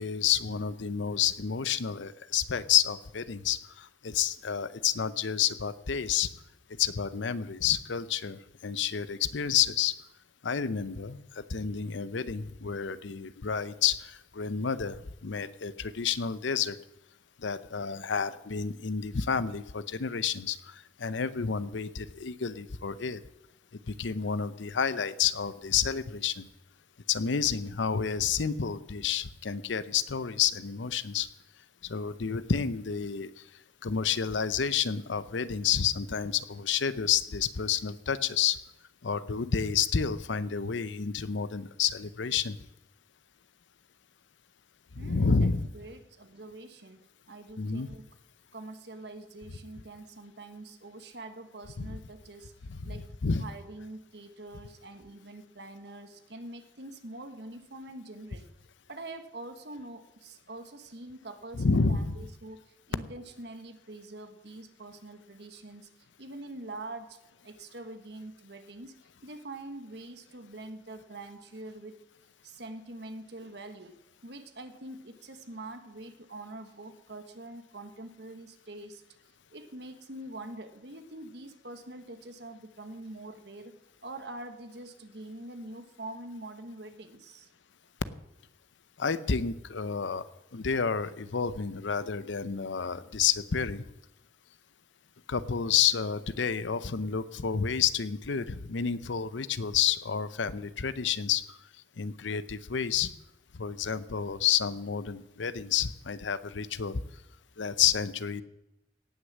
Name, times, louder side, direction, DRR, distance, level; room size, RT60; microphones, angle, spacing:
voice 1, 0.0-6.3 6.8-9.9 10.4-16.8 17.4-23.2 23.9-26.4 27.1-31.3 31.8-33.3 33.8-38.6 39.0-42.6 44.9-45.7 47.6-47.9 51.8-52.0 52.7-53.4 61.5-62.2 89.0-90.2 90.5-93.8 95.3-101.6 102.0-103.1 103.5-107.0 107.6-108.4, left 7 dB, 85° left, 15 dB, 0.7 m, -30 dB
voice 2, 45.0-48.0 48.5-52.5 52.9-53.1 53.4-58.5 58.9-65.9 66.2-67.2 67.4-69.0 69.2-72.0 72.4-74.0 74.2-79.0 79.5-83.7 84.0-87.5, right 2 dB, 65° right, 8 dB, 1.4 m, -44 dB
17.5 x 6.5 x 7.4 m, 0.95 s
head